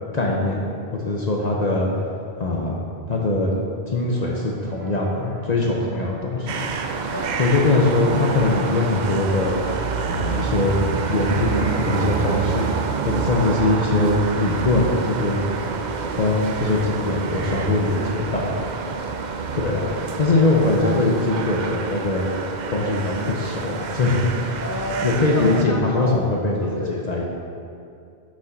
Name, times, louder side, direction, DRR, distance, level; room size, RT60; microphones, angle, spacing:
voice 1, 0.1-0.7 0.9-1.9 2.4-2.8 3.1-3.5 3.9-6.6 7.4-9.6 10.1-10.8 11.1-12.7 13.0-15.5 16.1-18.5 19.5-19.9 20.2-22.3 22.7-24.2 25.0-27.3, left 2 dB, 45° left, -2 dB, 0.8 m, -21 dB
sound 1, 4.2-9.9, right 2 dB, 75° right, 1.1 m, -42 dB
sound 2, 6.5-25.6, right 5 dB, 55° right, 0.5 m, -27 dB
Bowed string instrument, 10.1-13.3, left 1 dB, 5° right, 1.1 m, -44 dB
voice 2, 20.7-21.1 24.6-26.2 26.6-27.1, left 1 dB, 30° left, -2 dB, 0.3 m, -31 dB
6.7 x 5.2 x 5.1 m, 2.5 s
omnidirectional pair, 1.1 m